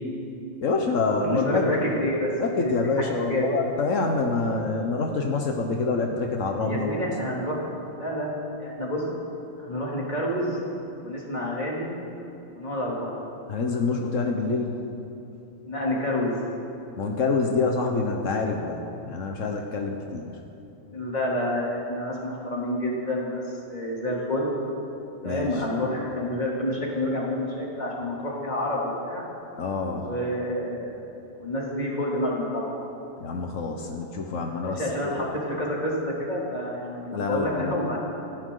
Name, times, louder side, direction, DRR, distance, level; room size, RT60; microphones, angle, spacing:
voice 1, 0.6-2.1 2.4-6.9 13.5-14.8 17.0-18.8 19.0-20.4 25.2-25.5 29.6-30.1 33.2-35.3 37.1-37.8, left 3 dB, 90° left, 2 dB, 1.5 m, -26 dB
voice 2, 1.2-2.7 3.3-3.6 6.6-7.6 7.9-9.0 9.6-10.6 11.0-11.9 12.5-13.3 15.6-16.4 20.9-24.5 25.2-29.2 30.0-31.0 31.4-32.7 34.6-38.0, left 1 dB, 35° left, -4 dB, 3.3 m, -28 dB
29.5 x 11.5 x 3.9 m, 2.9 s
omnidirectional pair, 1.3 m